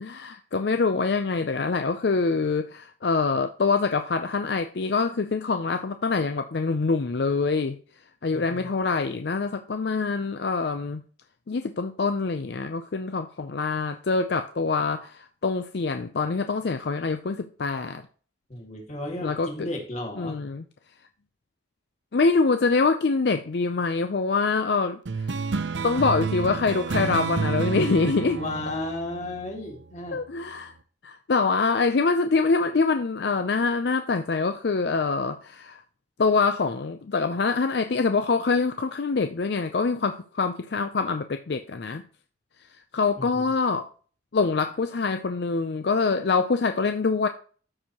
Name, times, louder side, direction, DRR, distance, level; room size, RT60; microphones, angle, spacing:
voice 1, 0.0-7.8 8.2-11.0 11.5-18.0 19.2-19.5 20.2-20.6 22.1-25.3 25.8-28.4 30.1-30.7 31.0-35.8 36.2-42.0 42.9-43.9 44.3-47.3, left 4 dB, 60° left, 8 dB, 0.5 m, -25 dB
voice 2, 8.3-8.7 18.5-20.4 28.3-30.2 43.2-43.5, left 2 dB, 35° left, 2 dB, 1.9 m, -34 dB
sound 1, 25.1-30.0, right 5 dB, 70° right, 0.6 m, -30 dB
13.5 x 4.6 x 2.9 m, 0.41 s
head